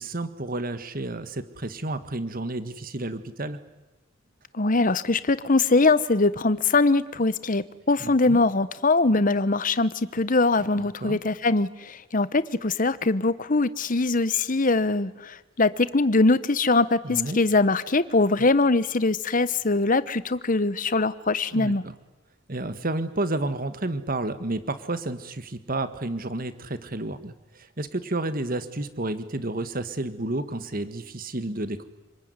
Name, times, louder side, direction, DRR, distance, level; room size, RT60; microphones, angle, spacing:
voice 1, 0.0-3.6 8.0-8.4 10.8-11.2 17.0-17.4 21.5-21.9 22.5-31.8, right 2 dB, 45° right, 12 dB, 1.6 m, -31 dB
voice 2, 4.5-21.8, left 3 dB, 40° left, 15 dB, 1.0 m, -22 dB
28.5 x 20.5 x 9.7 m, 1.1 s
head